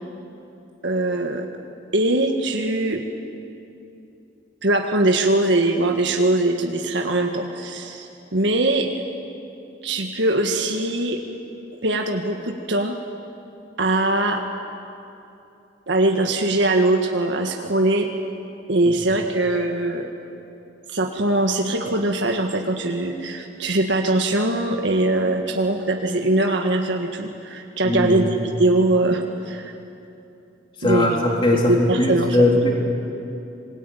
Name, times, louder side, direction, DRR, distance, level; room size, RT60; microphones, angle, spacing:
voice 1, 0.8-1.5 1.9-3.0 4.6-8.9 9.8-11.2 11.8-13.0 13.8-14.4 15.9-18.1 18.7-20.1 20.9-28.3 28.6-29.7 30.8-31.2 31.7-32.4, right 2 dB, 75° right, 3 dB, 1.7 m, -21 dB
voice 2, 27.8-28.2 30.8-32.7, left 1 dB, 25° left, -1 dB, 3.9 m, -19 dB
26.5 x 21.0 x 9.2 m, 2.8 s
head